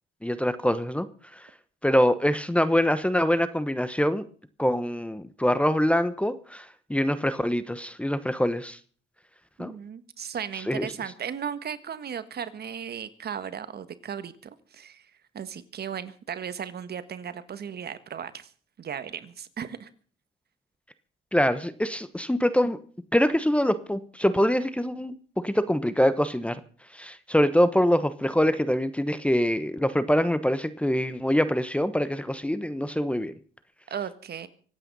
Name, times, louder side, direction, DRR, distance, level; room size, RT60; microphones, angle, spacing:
voice 1, 0.2-1.1 1.3-1.4 1.8-4.2 4.6-8.8 9.6-9.7 10.7-10.9 21.3-22.8 23.1-25.1 25.4-26.6 26.9-33.4, equal, 5° left, 14 dB, 1.0 m, -24 dB
voice 2, 9.6-15.1 15.3-18.5 18.8-19.9 33.9-34.5, right 8 dB, 55° right, 12 dB, 1.6 m, -36 dB
25.0 x 9.0 x 5.4 m, 0.44 s
cardioid pair, 90°, 20 cm